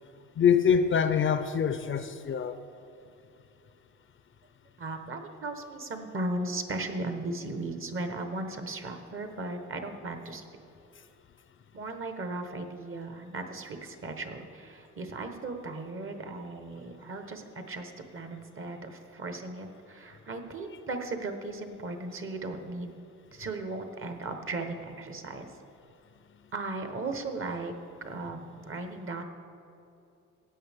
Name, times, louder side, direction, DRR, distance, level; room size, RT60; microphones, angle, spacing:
voice 1, 0.4-2.6, left 7 dB, 40° left, 10 dB, 0.5 m, -24 dB
voice 2, 4.8-10.4 11.7-23.0 23.3-25.5 26.5-27.7 28.0-29.2, right 2 dB, 45° right, 6 dB, 1.2 m, -37 dB
15.5 x 8.3 x 3.5 m, 2.7 s
cardioid pair, 90°, 30 cm